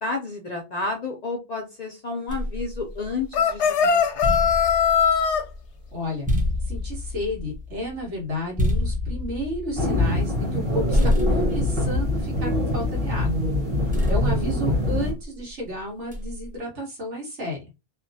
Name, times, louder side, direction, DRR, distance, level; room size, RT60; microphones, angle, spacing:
voice 1, 0.0-3.9 13.8-13.9, left 3 dB, 50° left, 1 dB, 0.5 m, -31 dB
sound 1, 2.3-3.6 4.0-10.6 10.9-13.2 13.9-15.4 16.1-16.6, left 1 dB, 10° right, 0.7 m, -28 dB
sound 2, 3.3-5.4, left 7 dB, 90° left, 0.9 m, -20 dB
voice 2, 5.9-6.3 6.7-13.4 14.1-17.6, equal, 80° right, -1 dB, 1.5 m, -32 dB
sound 3, 9.8-15.1, left 1 dB, 45° right, 1.4 m, -24 dB
2.8 x 2.4 x 2.6 m, 0.26 s
omnidirectional pair, 1.2 m